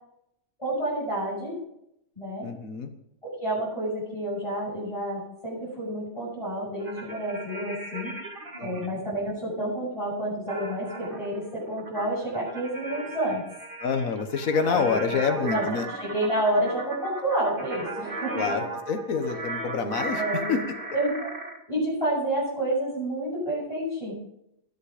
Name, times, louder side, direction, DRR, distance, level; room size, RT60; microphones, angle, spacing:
voice 1, 0.6-1.5 2.2-2.5 3.2-8.1 8.6-13.4 14.7-15.0 15.5-15.6 16.0-18.4 20.1-20.6 20.9-21.3 21.7-24.1, right 1 dB, 20° left, -9 dB, 7.9 m, -29 dB
voice 2, 2.4-2.9 8.6-9.0 13.8-15.9 18.3-20.8, left 5 dB, 60° left, 7 dB, 1.7 m, -27 dB
sound 1, 6.8-8.9 10.5-21.6, right 2 dB, 35° right, 2.1 m, -36 dB
22.0 x 8.5 x 5.0 m, 0.78 s
omnidirectional pair, 1.6 m